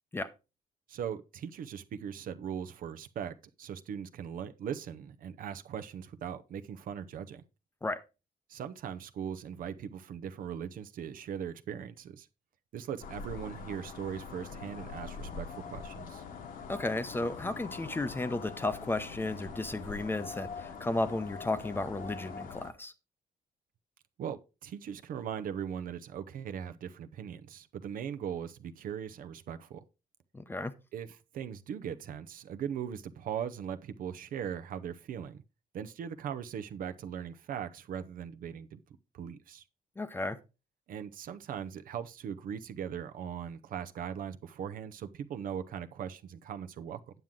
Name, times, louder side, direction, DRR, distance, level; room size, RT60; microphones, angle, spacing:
voice 1, 0.9-7.4 8.5-12.3 12.7-16.2 24.2-29.8 30.9-31.1 31.3-35.4 35.7-38.8 39.1-39.6 40.9-47.0, right 8 dB, 70° right, 0.7 m, -39 dB
sound 1, 13.0-22.7, left 5 dB, 70° left, 1.3 m, -43 dB
voice 2, 16.7-22.9 30.3-30.7 40.0-40.4, left 2 dB, 15° left, 0.7 m, -34 dB
9.2 x 7.4 x 3.8 m
cardioid pair, 140°, 15 cm